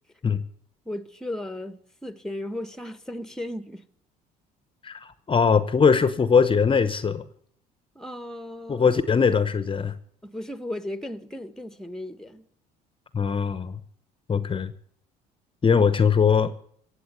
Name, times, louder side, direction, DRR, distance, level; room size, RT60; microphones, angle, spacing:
voice 1, 0.8-3.9 7.9-8.9 10.2-12.5, left 1 dB, 5° left, 1.1 m, -35 dB
voice 2, 4.8-7.2 8.7-9.9 13.1-13.8 14.3-14.7 15.6-16.5, left 6 dB, 25° left, 0.9 m, -21 dB
17.0 x 8.0 x 9.2 m
supercardioid pair, 80°, 19 cm